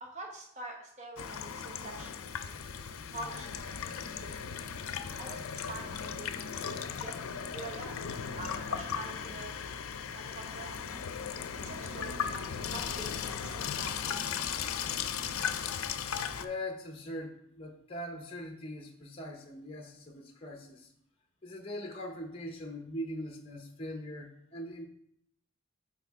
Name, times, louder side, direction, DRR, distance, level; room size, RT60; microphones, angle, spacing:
voice 1, 0.0-2.9 3.1-4.5 5.2-6.7 7.0-7.1 7.5-8.0 8.4-9.8 10.1-10.8 11.6-14.0, right 2 dB, 35° right, 1 dB, 1.0 m, -46 dB
Water tap faucet / Sink (filling or washing), 1.2-16.5, left 7 dB, 85° left, 0.5 m, -37 dB
voice 2, 16.4-20.9 21.4-24.9, left 1 dB, 25° left, 3 dB, 0.7 m, -41 dB
8.3 x 4.7 x 3.5 m, 0.71 s
head